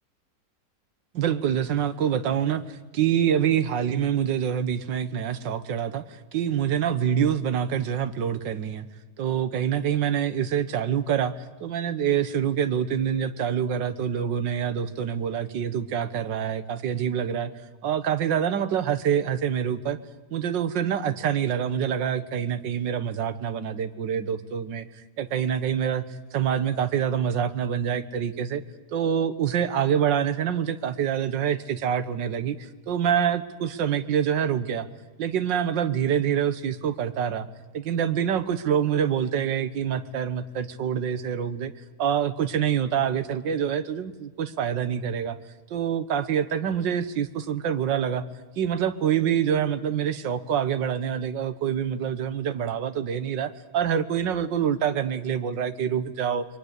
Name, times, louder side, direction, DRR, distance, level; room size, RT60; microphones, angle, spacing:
voice 1, 1.1-8.9 9.2-11.3 11.6-17.5 17.8-20.0 20.3-24.9 25.2-26.0 26.3-28.6 28.9-34.9 35.2-37.5 37.7-41.7 42.0-45.4 45.7-48.2 48.6-56.5, right 8 dB, 75° right, 12 dB, 1.8 m, -26 dB
29.0 x 22.5 x 8.2 m, 1.2 s
omnidirectional pair, 2.0 m